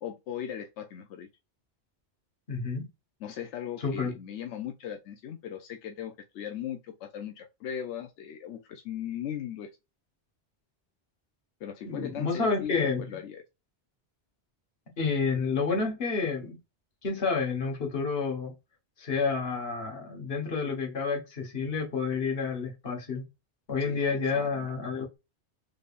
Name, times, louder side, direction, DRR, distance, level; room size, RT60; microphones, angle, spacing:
voice 1, 0.0-1.3 3.2-9.7 11.6-13.4 23.8-24.7, left 9 dB, 85° left, 0.9 m, -38 dB
voice 2, 2.5-2.9 3.8-4.1 11.8-13.2 15.0-16.6 17.0-18.5 19.0-23.2 23.7-25.2, left 4 dB, 60° left, 1.5 m, -29 dB
3.7 x 3.4 x 2.4 m
omnidirectional pair, 1.2 m